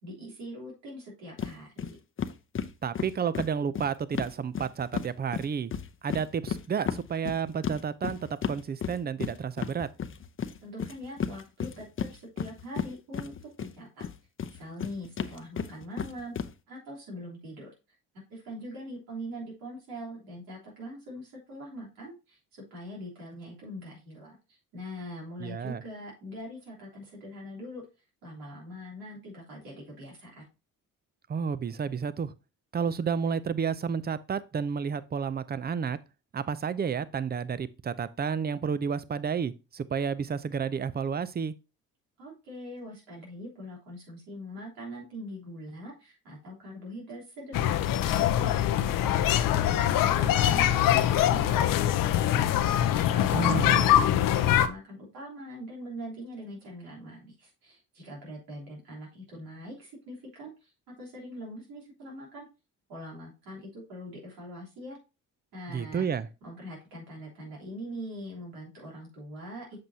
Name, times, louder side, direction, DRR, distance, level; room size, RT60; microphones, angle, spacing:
voice 1, 0.0-2.0 10.6-13.3 13.6-14.0 14.5-16.3 16.7-17.7 18.3-27.8 28.2-30.5 42.2-52.2 52.6-62.5 62.9-65.0 65.5-66.1 66.4-69.8, equal, 90° right, 3.5 m, -43 dB
sound 1, 1.4-1.5 1.8-1.9 2.2-5.1 5.3-13.7 14.0-16.5, left 7 dB, 35° left, 0.7 m, -33 dB
voice 2, 2.8-5.7 6.0-9.9 25.4-25.8 31.3-32.3 32.7-36.0 36.3-41.5 53.3-54.0 65.7-66.3, right 6 dB, 30° right, 0.6 m, -31 dB
sound 2, 47.5-54.7, left 11 dB, 70° left, 0.7 m, -23 dB
7.5 x 6.1 x 2.8 m
supercardioid pair, 70°, 35 cm